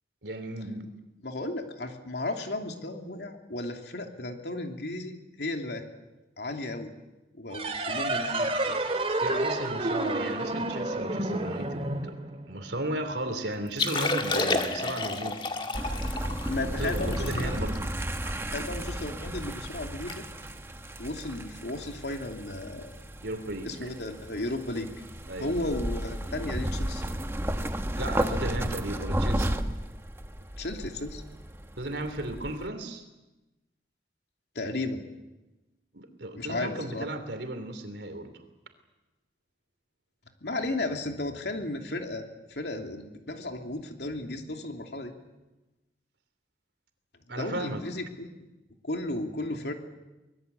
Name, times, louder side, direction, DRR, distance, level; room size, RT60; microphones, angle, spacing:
voice 1, 0.2-0.9 9.2-12.2 12.5-15.5 16.8-17.8 23.2-23.9 25.3-25.6 28.0-29.6 31.8-33.0 35.9-38.3 47.3-47.8, right 1 dB, 75° right, 8 dB, 3.2 m, -35 dB
voice 2, 1.2-5.8 6.4-6.9 7.3-8.8 16.5-17.5 18.5-20.2 21.0-22.9 23.6-24.9 25.4-27.0 30.6-31.2 34.5-35.0 36.4-37.1 40.4-45.1 47.4-48.5 48.8-49.7, left 2 dB, 70° left, 3 dB, 2.9 m, -34 dB
sound 1, 7.5-12.8, right 2 dB, 35° right, 2.5 m, -30 dB
Liquid, 13.7-19.0 19.5-19.6 19.9-20.2 20.4-20.7 21.3-21.5 23.0-23.1, left 3 dB, 30° left, 1.8 m, -31 dB
sound 2, 15.7-32.7, right 1 dB, 15° right, 1.1 m, -33 dB
24.5 x 21.0 x 8.2 m, 1.1 s
head